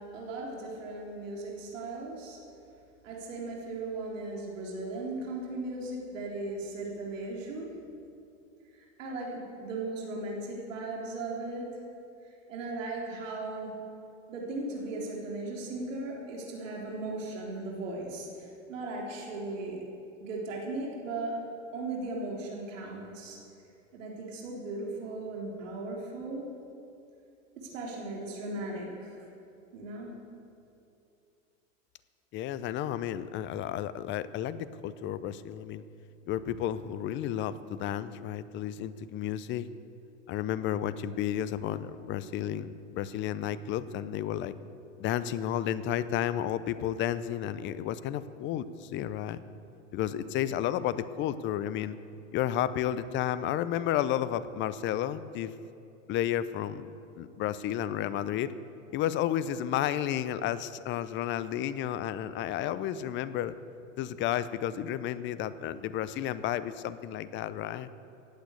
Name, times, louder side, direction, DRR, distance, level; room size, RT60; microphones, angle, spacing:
voice 1, 0.0-2.4 3.0-7.7 8.8-11.7 12.5-13.8 14.3-19.8 20.2-21.4 21.7-23.4 23.9-26.5 27.6-29.1 29.7-30.2, right 2 dB, 70° right, -2 dB, 3.7 m, -37 dB
voice 2, 32.3-35.8 36.3-39.7 40.3-44.5 45.0-49.4 49.9-52.0 52.3-55.5 56.1-56.8 57.2-58.5 58.9-63.5 64.0-67.9, left 11 dB, 30° left, 15 dB, 0.6 m, -32 dB
16.0 x 8.8 x 8.2 m, 2.7 s
hypercardioid pair, 110°, 40 cm